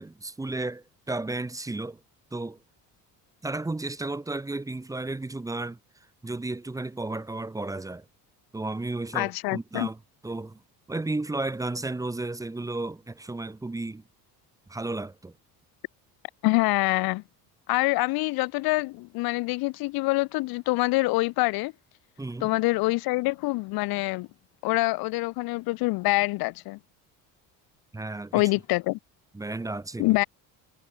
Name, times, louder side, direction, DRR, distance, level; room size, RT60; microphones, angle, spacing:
voice 1, 0.0-2.0 2.3-2.6 3.4-5.8 6.2-8.0 8.5-10.6 10.9-14.0 14.7-15.4 22.2-22.5 27.9-28.4 29.3-30.2, right 2 dB, 10° right, 1.0 m, -33 dB
voice 2, 9.1-9.9 16.4-17.2 17.7-21.7 22.4-24.3 24.6-26.8 28.3-29.0 30.0-30.2, left 22 dB, 65° left, 0.5 m, -25 dB
cardioid pair, 150°, 39 cm